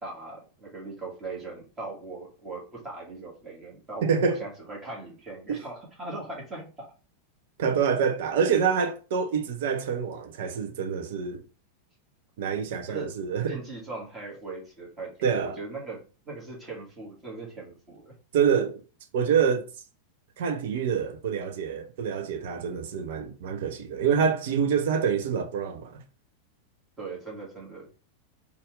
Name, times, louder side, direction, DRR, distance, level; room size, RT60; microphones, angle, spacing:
voice 1, 0.0-6.9 12.9-13.1 13.5-15.2 15.6-18.2 27.0-28.1, right 3 dB, 20° right, 1.9 m, -39 dB
voice 2, 4.0-4.4 5.5-5.6 7.6-11.4 12.4-13.6 15.2-15.6 18.3-18.8 19.1-19.7 20.4-26.0, right 6 dB, 55° right, 0.5 m, -26 dB
4.1 x 2.5 x 3.2 m
figure-of-eight pair, 90°, 0 cm